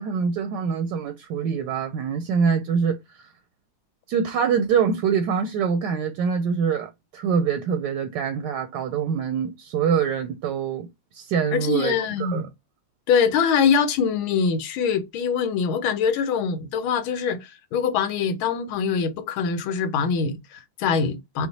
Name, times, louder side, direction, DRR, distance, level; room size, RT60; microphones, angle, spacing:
voice 1, 0.0-3.0 4.1-10.9 11.1-12.4, right 6 dB, 70° right, 1.1 m, -24 dB
voice 2, 11.5-12.5 13.1-21.5, left 6 dB, 85° left, 1.6 m, -23 dB
5.0 x 2.0 x 4.0 m
omnidirectional pair, 2.2 m